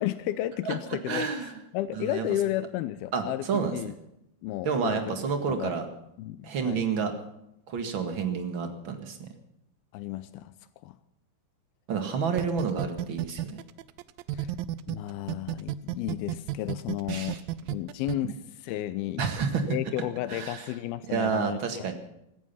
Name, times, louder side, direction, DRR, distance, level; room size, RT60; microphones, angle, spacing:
voice 1, 0.0-1.3 1.7-3.4 3.7-3.9 4.4-5.0 5.5-5.7 6.2-6.8 9.9-10.5 10.8-11.0 14.3-14.5 14.9-17.4 17.7-19.3 19.7-21.9, left 14 dB, 85° left, 14 dB, 2.6 m, -32 dB
voice 2, 1.1-1.6 2.0-2.3 3.1-3.8 4.6-5.9 6.4-7.1 7.7-9.3 11.9-13.6 17.1-17.4 18.2-18.3 19.2-19.6 20.3-20.7 21.1-21.9, right 6 dB, 45° right, 7 dB, 1.9 m, -29 dB
sound 1, 12.4-15.0 15.3-18.1, right 16 dB, 80° right, 2.3 m, -31 dB
17.5 x 14.0 x 5.6 m, 0.81 s
omnidirectional pair, 4.4 m